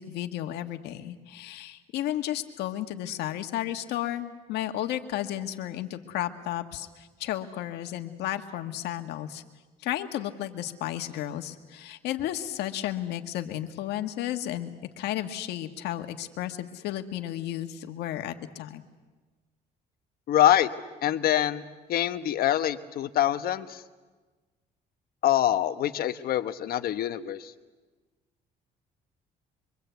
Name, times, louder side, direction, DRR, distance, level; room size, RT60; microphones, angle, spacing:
voice 1, 0.0-9.4 9.8-14.7 15.0-18.8, left 12 dB, 85° left, 6 dB, 1.8 m, -33 dB
voice 2, 20.3-20.7 21.0-21.6 21.9-23.8 25.2-27.5, left 12 dB, 65° left, 9 dB, 1.3 m, -25 dB
25.5 x 24.0 x 8.3 m, 1.3 s
cardioid pair, 110°, 17 cm